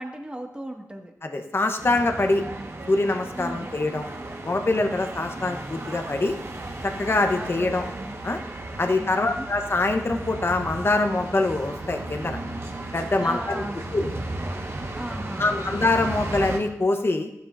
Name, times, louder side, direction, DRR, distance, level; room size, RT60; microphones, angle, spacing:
voice 1, 0.0-1.1 3.4-3.8 5.3-5.6 7.3-8.2 8.8-9.5 13.2-13.8 15.0-15.7, right 1 dB, 15° right, 1 dB, 1.8 m, -37 dB
voice 2, 1.2-2.4 2.9-4.1 4.4-6.3 6.8-7.8 8.2-8.4 8.8-12.4 12.9-13.6 13.9-14.1 15.4-17.3, left 2 dB, 40° left, 5 dB, 1.1 m, -24 dB
sound 1, 1.8-16.6, right 2 dB, 45° right, 1.5 m, -35 dB
15.0 x 11.0 x 2.7 m, 0.88 s
wide cardioid pair, 70°, 6 cm